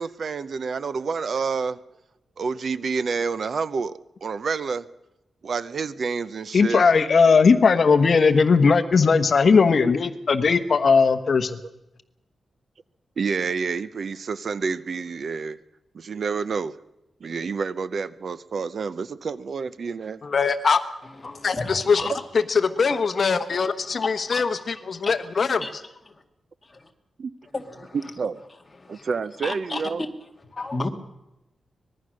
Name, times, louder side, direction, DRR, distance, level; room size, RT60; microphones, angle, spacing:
voice 1, 0.0-1.8 2.4-4.9 5.4-6.8 13.2-15.6 15.9-16.8 17.2-20.2 22.0-22.2 27.2-27.3 28.2-28.4 28.9-30.0, right 5 dB, 50° right, 15 dB, 0.7 m, -28 dB
voice 2, 6.5-11.6 20.2-20.8 21.4-22.0 22.5-25.6, left 5 dB, 45° left, 9 dB, 1.1 m, -19 dB
voice 3, 21.0-22.2 24.0-24.6 25.0-25.1 25.6-25.7 26.1-26.2 26.6-26.9 27.5-28.0 28.8-29.1 29.4-30.1 30.5-30.9, left 2 dB, 20° left, 3 dB, 2.1 m, -33 dB
24.5 x 20.5 x 6.4 m, 0.91 s
wide cardioid pair, 175°, 0 cm